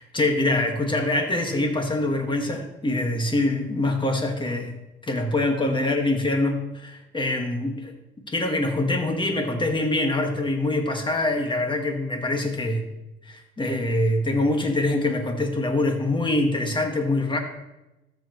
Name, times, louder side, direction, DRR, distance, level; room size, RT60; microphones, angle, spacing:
voice 1, 0.0-4.7 5.1-7.9 8.3-12.8 13.2-17.4, left 2 dB, 25° left, 3 dB, 1.8 m, -24 dB
13.5 x 7.1 x 3.2 m, 0.97 s
cardioid pair, 90°, 20 cm